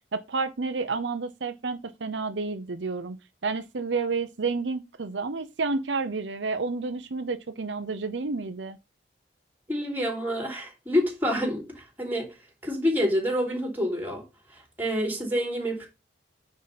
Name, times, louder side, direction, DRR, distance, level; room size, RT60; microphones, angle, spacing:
voice 1, 0.1-3.2 3.4-8.8, right 4 dB, 80° right, 0.7 m, -30 dB
voice 2, 9.7-12.3 12.6-14.2 14.5-15.9, equal, 10° right, 3.4 m, -27 dB
9.6 x 4.9 x 4.1 m
head